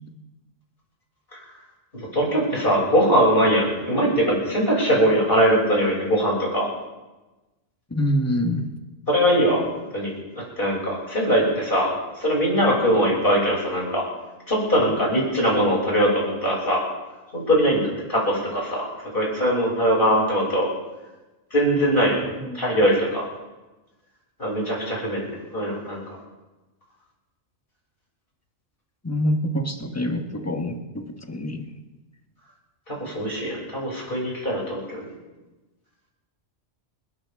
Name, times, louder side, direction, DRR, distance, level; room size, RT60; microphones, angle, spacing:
voice 1, 2.1-6.7 9.1-11.9 12.2-14.0 14.5-16.8 17.3-18.8 19.1-20.7 21.5-22.2 22.5-23.2 24.4-25.3 25.5-26.0 32.9-35.1, equal, 50° left, -4 dB, 6.9 m, -21 dB
voice 2, 7.9-8.7 22.4-22.6 29.0-31.7, equal, 15° left, 4 dB, 1.3 m, -26 dB
29.5 x 13.0 x 3.7 m, 1.1 s
omnidirectional pair, 1.2 m